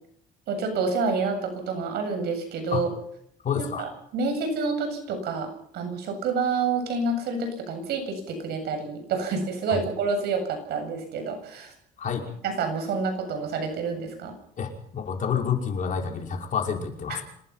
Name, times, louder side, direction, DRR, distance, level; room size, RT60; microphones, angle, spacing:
voice 1, 0.5-2.9 3.5-5.5 5.7-11.7 12.4-14.3 17.1-17.2, right 4 dB, 75° right, 6 dB, 7.8 m, -28 dB
voice 2, 3.4-3.9 9.7-9.8 12.0-12.2 14.6-17.2, left 7 dB, 50° left, 2 dB, 5.4 m, -28 dB
26.5 x 20.5 x 5.8 m, 0.69 s
cardioid pair, 110°, 17 cm